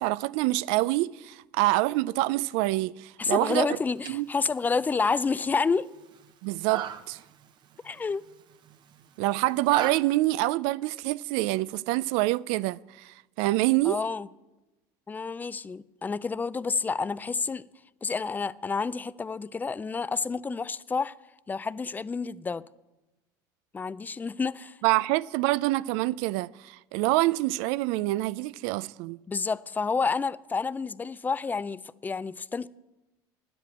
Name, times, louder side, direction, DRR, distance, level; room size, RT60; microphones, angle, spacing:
voice 1, 0.0-3.7 4.1-4.3 6.4-7.2 9.2-14.0 24.8-29.2, right 19 dB, 75° right, 0.4 m, -26 dB
voice 2, 3.2-5.9 7.8-8.2 13.8-14.3 15.1-17.7 18.0-21.1 21.5-22.6 23.7-24.8 29.3-32.7, left 4 dB, 15° left, 0.4 m, -29 dB
sound 1, 3.7-9.9, right 9 dB, 45° right, 0.8 m, -40 dB
9.9 x 7.7 x 8.4 m
supercardioid pair, 100°, 10 cm